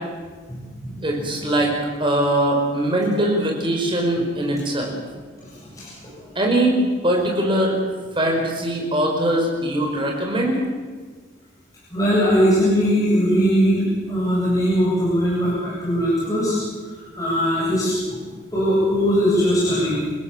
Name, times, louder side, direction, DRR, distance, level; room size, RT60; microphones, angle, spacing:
voice 1, 0.5-1.3 5.4-5.9 11.9-16.6 17.2-18.2 18.5-20.1, equal, 20° left, -8 dB, 8.0 m, -20 dB
voice 2, 1.0-1.7 2.0-4.9 6.4-6.8 7.0-7.7 8.2-10.6, right 1 dB, 25° right, 0 dB, 5.2 m, -21 dB
28.5 x 16.0 x 7.5 m, 1.5 s
head